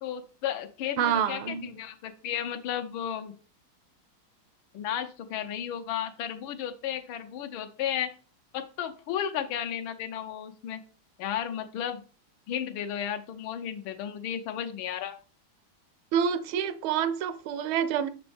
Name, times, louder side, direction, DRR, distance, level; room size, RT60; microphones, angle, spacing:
voice 1, 0.0-3.3 4.7-8.1 8.5-10.8 11.2-12.0 12.5-15.1, left 9 dB, 75° left, 1.5 m, -33 dB
voice 2, 1.0-1.7 16.1-18.1, right 8 dB, 80° right, 1.4 m, -27 dB
6.1 x 6.0 x 3.4 m
omnidirectional pair, 2.3 m